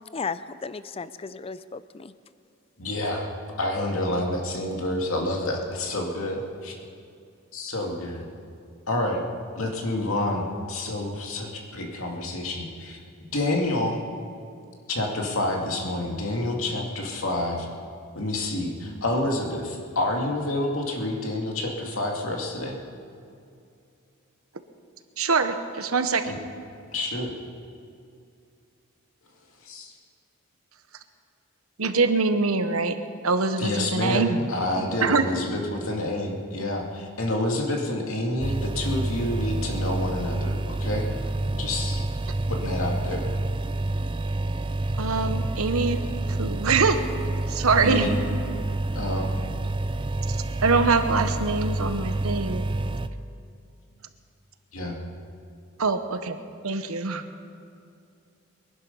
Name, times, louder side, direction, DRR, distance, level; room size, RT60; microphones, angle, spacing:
voice 1, 0.1-2.1, left 5 dB, 25° left, 14 dB, 0.4 m, -34 dB
voice 2, 2.8-3.3 3.6-6.7 7.5-8.3 8.9-9.2 9.6-13.0 13.3-14.0 14.9-17.7 18.1-22.8 26.2-26.4 26.9-27.3 29.6-29.9 33.6-41.1 41.6-42.1 42.5-43.2 47.8-48.2 48.9-49.3 54.7-55.0, left 1 dB, 75° left, 0 dB, 2.4 m, -28 dB
voice 3, 25.2-26.3 31.8-32.9 33.2-34.4 35.0-35.4 45.0-46.0 46.3-47.0 47.5-48.1 50.3-52.7 55.8-57.2, right 4 dB, 85° right, 8 dB, 1.1 m, -24 dB
sound 1, 38.4-53.1, right 2 dB, 25° right, 0.5 m, -28 dB
23.0 x 11.5 x 5.5 m, 2.5 s
head